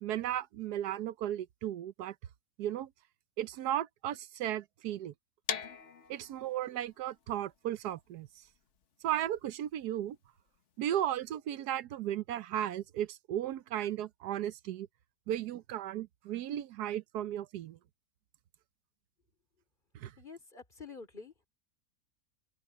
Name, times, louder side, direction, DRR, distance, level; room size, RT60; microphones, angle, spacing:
voice 1, 0.0-2.1 2.6-2.9 3.4-5.1 6.1-8.3 9.0-10.2 10.8-14.9 15.3-17.8 19.9-20.1, right 12 dB, 80° right, 1.3 m, -35 dB
sound 1, 5.5-11.3, left 7 dB, 50° left, 1.3 m, -43 dB
voice 2, 20.2-21.5, left 5 dB, 30° left, 3.6 m, -48 dB
open air
omnidirectional pair, 1.7 m